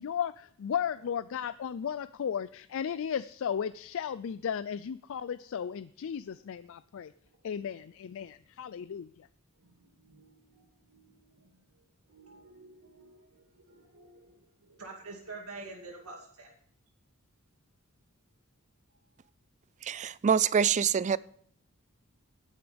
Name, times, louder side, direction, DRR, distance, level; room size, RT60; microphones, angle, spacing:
voice 1, 0.0-7.1 7.4-9.3, left 8 dB, 65° left, 14 dB, 0.4 m, -35 dB
voice 2, 9.6-11.5 12.1-16.5, right 3 dB, 85° right, 0 dB, 2.2 m, -49 dB
voice 3, 19.8-21.2, right 7 dB, 35° right, 20 dB, 0.3 m, -25 dB
17.5 x 9.8 x 3.5 m, 0.64 s
head